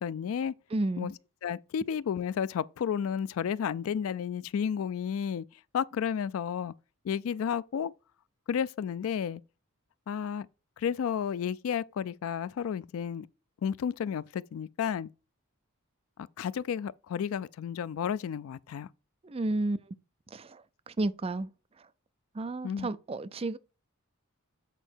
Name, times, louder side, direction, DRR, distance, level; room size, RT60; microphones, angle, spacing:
voice 1, 0.0-0.5 1.0-5.5 5.7-6.7 7.0-7.9 8.5-9.4 10.1-10.5 10.8-13.3 13.6-15.1 16.4-18.9 22.6-22.9, left 8 dB, 70° left, 0.3 m, -32 dB
voice 2, 0.7-1.1 19.2-19.8 20.3-20.6 20.9-21.5 22.4-23.6, right 2 dB, 25° right, 0.4 m, -31 dB
8.2 x 4.4 x 4.5 m
head